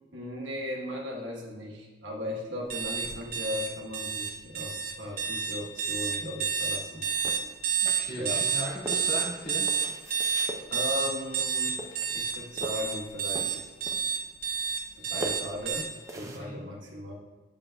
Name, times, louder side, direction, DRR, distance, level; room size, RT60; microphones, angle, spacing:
voice 1, 0.1-7.1 8.2-8.4 10.7-11.8 12.1-13.7 15.0-15.9 16.1-17.1, left 1 dB, 75° right, -1 dB, 1.2 m, -37 dB
sound 1, 2.7-15.8, right 6 dB, 50° right, 0.7 m, -29 dB
sound 2, 7.2-8.4 8.9-10.6 11.3-11.5 11.8-13.0 13.3-14.2 14.5-16.4, right 1 dB, 15° right, 0.5 m, -40 dB
voice 2, 8.0-9.7 16.2-16.6, left 1 dB, 55° left, -6 dB, 1.8 m, -37 dB
7.4 x 7.0 x 2.2 m, 1.2 s
head